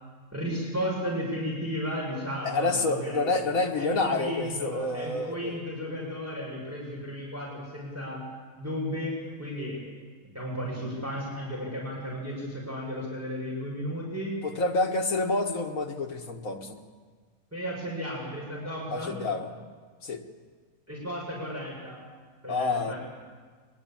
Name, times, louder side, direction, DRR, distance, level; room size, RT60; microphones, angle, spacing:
voice 1, 0.3-3.4 3.8-8.2 8.6-9.8 10.3-14.4 17.5-19.2 20.9-22.0 22.4-23.0, equal, 10° right, -4 dB, 5.8 m, -34 dB
voice 2, 2.4-5.6 14.4-16.8 18.9-19.5 20.0-20.2 22.5-22.9, left 3 dB, 70° left, 4 dB, 2.0 m, -28 dB
23.0 x 21.5 x 8.8 m, 1.5 s
omnidirectional pair, 1.5 m